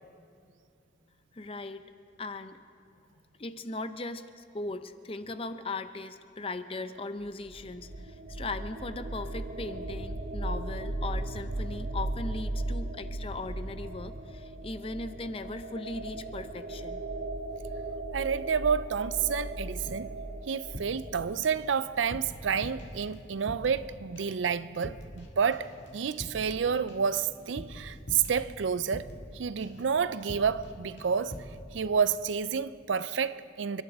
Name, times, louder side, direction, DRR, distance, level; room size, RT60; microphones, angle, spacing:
voice 1, 1.3-1.9 2.2-2.6 3.4-17.0, left 2 dB, 30° left, 0.6 m, -38 dB
sound 1, 7.2-22.1, right 1 dB, 60° right, 0.8 m, -37 dB
voice 2, 18.1-20.2 20.5-29.1 29.3-31.4 31.7-33.8, right 6 dB, 90° right, 0.5 m, -29 dB
sound 2, 20.7-21.7 21.9-23.9 24.2-24.5 24.7-25.3 25.5-29.3 29.6-29.9 30.2-30.7 31.0-31.6, equal, 70° left, 2.1 m, -44 dB
29.5 x 12.0 x 3.6 m
head